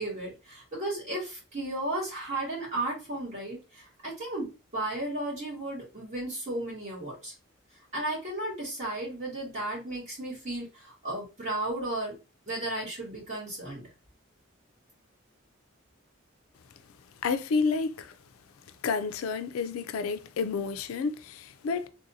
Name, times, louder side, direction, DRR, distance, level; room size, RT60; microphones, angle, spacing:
voice 1, 0.0-7.3 7.9-12.1 12.5-13.8, right 1 dB, 35° right, 1.9 m, -34 dB
voice 2, 17.2-18.1 18.8-21.9, left 5 dB, 85° left, 0.3 m, -30 dB
3.4 x 2.5 x 2.7 m
head